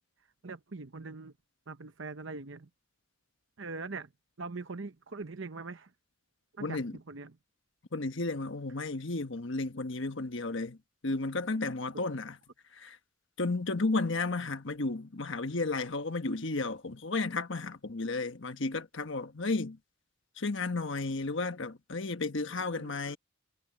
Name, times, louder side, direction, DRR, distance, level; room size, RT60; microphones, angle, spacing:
voice 1, 0.4-1.3 1.7-2.7 3.6-4.1 4.4-5.9 6.6-7.4 11.9-12.0 22.5-23.2, right 3 dB, 60° right, 0.9 m, -42 dB
voice 2, 6.6-7.0 7.9-10.8 11.0-12.4 12.7-13.0 13.4-19.8 20.4-23.2, left 3 dB, 60° left, 1.3 m, -33 dB
head